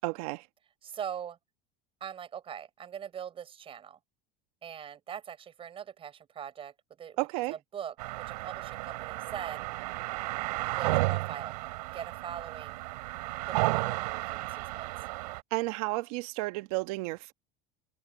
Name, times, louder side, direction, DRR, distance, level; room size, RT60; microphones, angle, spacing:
voice 1, 0.0-0.4 7.2-7.5 15.5-17.3, right 22 dB, 70° right, 1.4 m, -32 dB
voice 2, 0.8-1.4 2.0-4.0 4.6-9.6 10.8-11.5 11.9-12.8 13.4-14.9, right 8 dB, 25° right, 6.9 m, -42 dB
sound 1, 8.0-15.4, right 21 dB, 90° right, 3.8 m, -33 dB
supercardioid pair, 150°, 20 cm